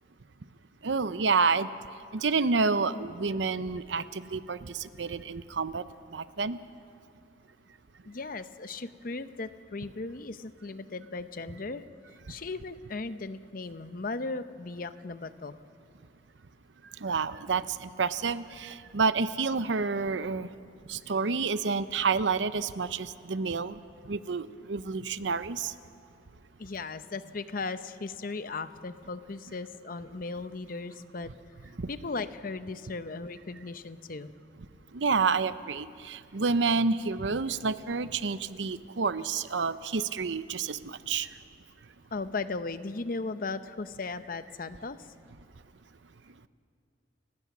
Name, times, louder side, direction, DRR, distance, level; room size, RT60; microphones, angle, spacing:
voice 1, 0.8-1.7 2.1-5.8 6.1-6.6 17.0-20.5 20.9-23.7 24.1-25.7 31.8-31.9 34.9-41.3, right 4 dB, 85° right, 14 dB, 0.7 m, -29 dB
voice 2, 8.0-11.8 12.3-15.6 26.6-31.3 31.9-34.3 42.1-45.1, left 3 dB, 50° left, 12 dB, 0.8 m, -37 dB
30.0 x 16.5 x 6.1 m, 2.4 s
head